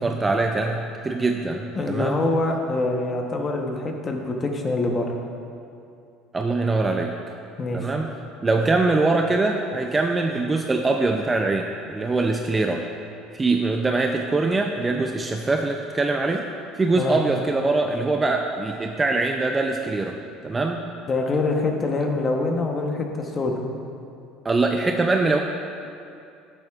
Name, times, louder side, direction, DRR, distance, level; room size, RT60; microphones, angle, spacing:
voice 1, 0.0-2.2 6.3-7.1 7.7-8.1 8.4-12.8 13.3-16.5 16.8-20.2 20.4-20.9 24.4-25.4, right 3 dB, 15° right, 3 dB, 0.4 m, -23 dB
voice 2, 1.7-5.1 7.6-7.9 17.0-17.2 21.1-23.6, left 2 dB, 25° left, 2 dB, 0.9 m, -25 dB
11.5 x 7.8 x 2.4 m, 2.5 s
cardioid pair, 135°, 0 cm